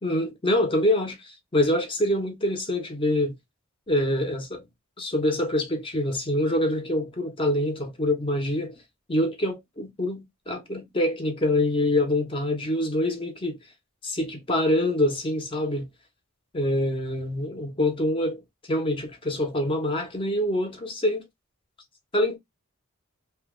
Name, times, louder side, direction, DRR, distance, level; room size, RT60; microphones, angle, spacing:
voice 1, 0.0-3.3 3.9-4.7 5.0-8.8 9.1-13.6 14.0-15.9 16.5-21.2 22.1-22.4, left 1 dB, 25° left, 0.6 m, -25 dB
2.8 x 2.0 x 3.5 m
head